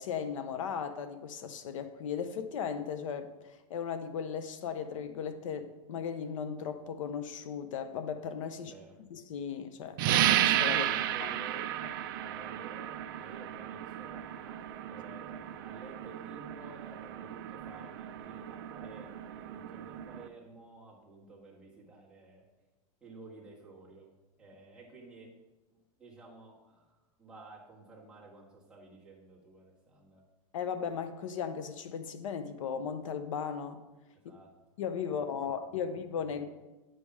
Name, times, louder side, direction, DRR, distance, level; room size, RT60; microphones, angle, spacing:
voice 1, 0.0-8.7 9.1-10.8 11.2-11.3 30.5-33.8 34.8-36.5, left 7 dB, 65° left, 10 dB, 0.6 m, -37 dB
voice 2, 8.6-9.0 10.7-22.5 23.0-24.1 24.4-25.4 26.0-30.2 34.1-34.6 35.0-35.2 35.6-35.7, right 3 dB, 5° right, -7 dB, 1.5 m, -52 dB
sound 1, 10.0-20.3, right 11 dB, 40° right, 0.4 m, -33 dB
9.9 x 5.4 x 4.7 m, 1.1 s
supercardioid pair, 175°, 18 cm